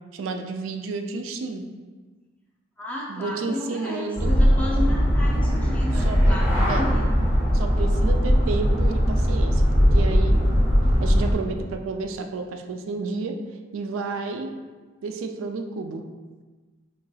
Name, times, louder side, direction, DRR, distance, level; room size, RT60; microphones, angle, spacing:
voice 1, 0.1-1.6 3.1-4.4 6.0-6.4 6.7-6.9 7.5-10.4 11.0-13.4 13.7-14.5 15.0-16.0, right 3 dB, 85° right, 6 dB, 0.3 m, -31 dB
voice 2, 2.8-7.1, left 1 dB, 5° left, -4 dB, 0.5 m, -33 dB
sound 1, 4.2-11.3, equal, 10° right, 0.8 m, -20 dB
3.7 x 3.1 x 2.2 m, 1.3 s
head